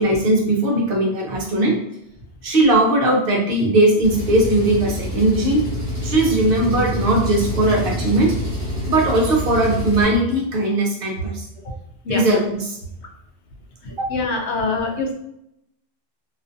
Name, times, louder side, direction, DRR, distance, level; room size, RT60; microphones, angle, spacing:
voice 1, 0.0-1.8 2.4-5.6 6.0-8.3 8.9-11.4 12.1-12.8, right 1 dB, 60° right, -1 dB, 0.8 m, -18 dB
Engine, 4.0-10.0, equal, 15° right, 0.9 m, -27 dB
voice 2, 14.1-15.1, left 3 dB, 85° left, 1 dB, 0.9 m, -23 dB
2.4 x 2.4 x 2.5 m, 0.78 s
omnidirectional pair, 1.1 m